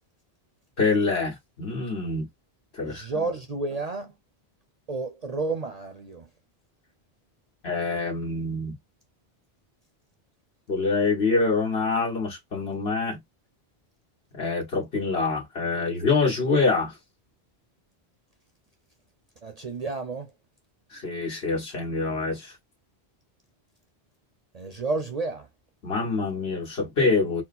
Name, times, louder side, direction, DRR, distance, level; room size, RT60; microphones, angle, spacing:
voice 1, 0.8-2.3 2.8-3.3 7.6-8.7 10.7-13.2 14.3-16.9 20.9-22.5 25.8-27.4, left 3 dB, 70° left, 1.6 m, -25 dB
voice 2, 2.8-4.1 4.9-6.3 19.4-20.3 24.5-25.5, right 3 dB, 45° right, 0.6 m, -31 dB
4.2 x 2.1 x 4.1 m
omnidirectional pair, 1.1 m